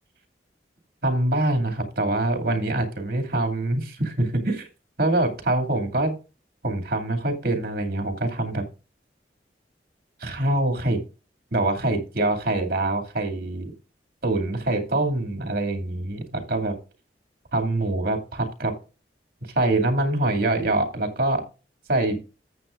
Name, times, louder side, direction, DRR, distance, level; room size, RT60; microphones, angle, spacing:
voice 1, 1.0-4.7 5.0-6.2 6.6-8.6 10.2-11.0 11.5-13.7 14.2-16.8 17.5-18.7 19.5-21.4 21.9-22.2, right 2 dB, 55° right, 3 dB, 2.4 m, -24 dB
14.0 x 7.7 x 2.5 m, 0.33 s
head